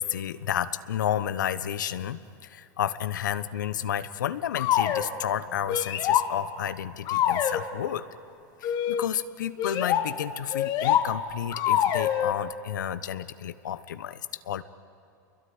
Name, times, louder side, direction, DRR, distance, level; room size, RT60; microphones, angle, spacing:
voice 1, 0.0-8.0 8.6-14.6, left 10 dB, 85° left, 13 dB, 1.1 m, -31 dB
sound 1, 4.5-5.1 5.7-6.3 7.1-7.6 8.6-9.1 9.6-10.1 10.5-11.1 11.5-12.3, left 10 dB, 45° left, 1.9 m, -25 dB
27.5 x 22.5 x 9.7 m, 2.7 s
hypercardioid pair, 115°, 10 cm